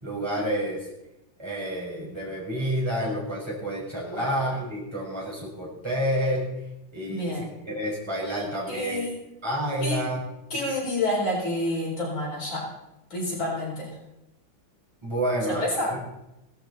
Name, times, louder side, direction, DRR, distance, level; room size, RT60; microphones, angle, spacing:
voice 1, 0.0-0.9 1.4-6.5 6.9-7.4 7.7-9.0 9.4-10.2 15.0-16.0, equal, 10° right, -5 dB, 5.3 m, -29 dB
voice 2, 7.1-7.5 8.7-9.2 9.8-10.0 10.5-12.7 13.1-13.9 15.5-15.9, left 1 dB, 60° left, -4 dB, 4.9 m, -28 dB
17.0 x 14.5 x 4.1 m, 0.91 s
omnidirectional pair, 2.4 m